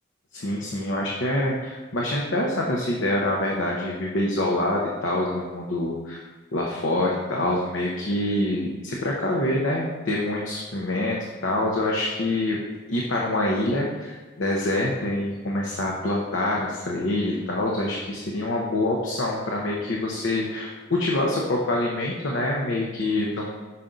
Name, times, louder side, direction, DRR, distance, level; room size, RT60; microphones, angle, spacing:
voice 1, 0.3-6.2 6.5-12.6 12.9-23.5, left 1 dB, 75° left, -2 dB, 0.8 m, -26 dB
5.8 x 5.2 x 3.8 m, 1.3 s
head